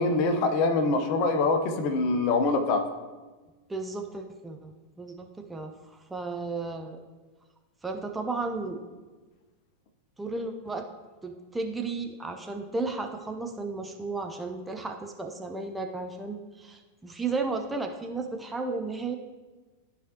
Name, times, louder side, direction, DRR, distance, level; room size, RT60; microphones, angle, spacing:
voice 1, 0.0-2.8, left 3 dB, 45° left, 5 dB, 0.9 m, -24 dB
voice 2, 3.7-7.0 7.8-8.8 10.2-10.9 11.2-19.2, right 3 dB, 10° right, 4 dB, 0.6 m, -34 dB
14.0 x 4.8 x 2.9 m, 1.3 s
figure-of-eight pair, 90°, 0 cm